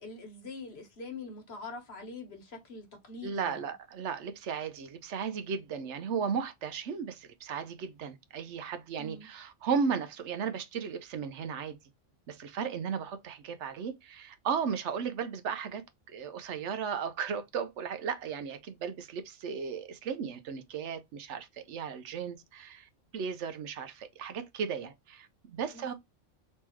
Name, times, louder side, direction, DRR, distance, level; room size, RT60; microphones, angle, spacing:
voice 1, 0.0-3.6 9.0-9.3 25.7-25.9, left 3 dB, 55° left, 1.3 m, -44 dB
voice 2, 3.2-11.8 12.3-25.9, right 6 dB, 70° right, 0.9 m, -35 dB
3.5 x 3.2 x 3.0 m
omnidirectional pair, 1.3 m